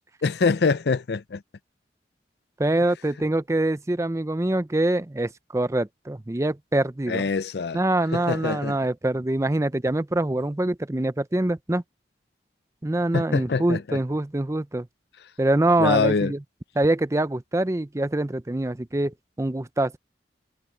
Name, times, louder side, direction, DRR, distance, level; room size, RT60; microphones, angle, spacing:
voice 1, 0.2-1.4 7.1-7.8 8.1-8.8 13.1-14.0 15.8-16.3, left 4 dB, 65° left, 0.5 m, -24 dB
voice 2, 2.6-7.3 7.7-11.8 12.8-14.9 15.4-16.4 16.8-20.0, right 1 dB, 15° right, 0.5 m, -24 dB
head